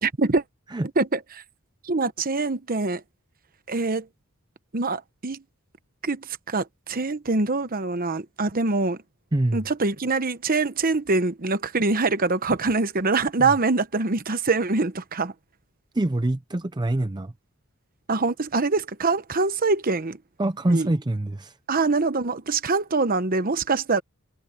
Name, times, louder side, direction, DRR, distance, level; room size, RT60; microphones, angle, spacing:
voice 1, 0.0-0.4 1.0-1.4 1.8-3.0 3.7-4.1 4.7-5.4 6.0-9.0 9.5-15.3 18.1-20.2 20.7-20.9 21.7-24.0, right 3 dB, 45° right, 1.1 m, -24 dB
voice 2, 9.3-9.6 13.4-13.5 15.9-17.3 20.4-21.5, right 1 dB, 20° right, 0.6 m, -25 dB
head